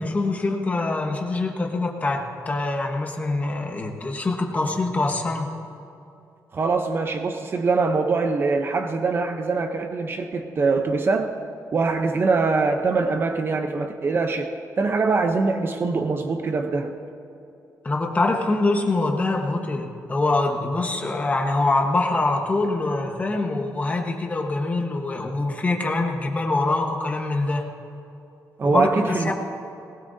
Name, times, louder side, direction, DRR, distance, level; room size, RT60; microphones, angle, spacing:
voice 1, 0.0-5.5 17.8-27.6 28.6-29.3, left 2 dB, 25° left, 2 dB, 1.2 m, -24 dB
voice 2, 6.5-11.3 11.7-17.0 28.6-29.3, right 4 dB, 35° right, 6 dB, 0.7 m, -23 dB
20.0 x 19.0 x 2.7 m, 2.8 s
wide cardioid pair, 165°, 7 cm